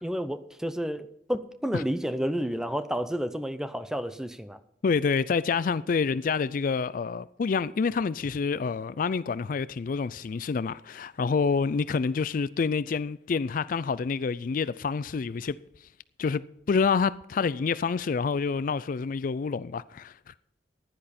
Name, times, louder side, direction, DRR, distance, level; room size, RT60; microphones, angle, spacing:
voice 1, 0.0-4.6, equal, 5° right, 0.7 m, -31 dB
voice 2, 4.8-15.6 16.2-16.4 16.7-20.1, left 5 dB, 50° left, 0.4 m, -27 dB
15.0 x 10.5 x 4.3 m
head